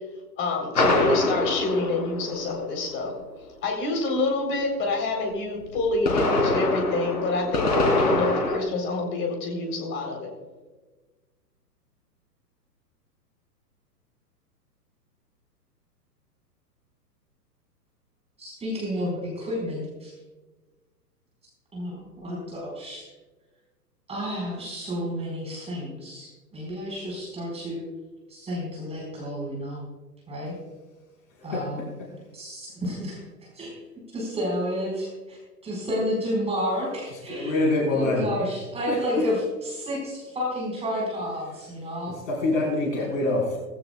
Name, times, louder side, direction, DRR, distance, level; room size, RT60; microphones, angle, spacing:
voice 1, 0.4-3.1 3.6-10.3, left 2 dB, 25° left, 3 dB, 3.5 m, -27 dB
sound 1, 0.7-2.8 5.8-8.6, left 2 dB, 70° left, 3.3 m, -24 dB
voice 2, 18.4-20.1 21.7-23.1 24.1-27.8 28.3-29.8 30.3-30.5 31.4-31.9 32.3-33.2 33.5-33.7 34.1-42.1, equal, 10° right, -3 dB, 4.5 m, -31 dB
voice 3, 37.3-38.3 38.9-39.3 42.3-43.6, left 2 dB, 50° left, -2 dB, 4.5 m, -25 dB
19.0 x 15.5 x 2.3 m, 1.3 s
figure-of-eight pair, 115°, 49 cm